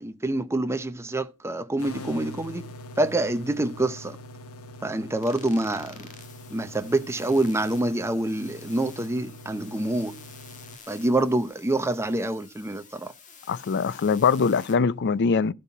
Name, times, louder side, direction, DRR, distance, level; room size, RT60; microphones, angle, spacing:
voice 1, 0.0-2.6 3.0-4.2 4.8-6.1 6.5-10.1 10.9-13.1, right 2 dB, 10° right, 0.6 m, -26 dB
sound 1, 1.8-10.8, left 1 dB, 70° left, 1.1 m, -43 dB
sound 2, 5.2-14.8, left 6 dB, 35° left, 1.6 m, -49 dB
voice 2, 13.5-15.5, left 5 dB, 50° left, 0.4 m, -22 dB
14.5 x 5.8 x 4.5 m
head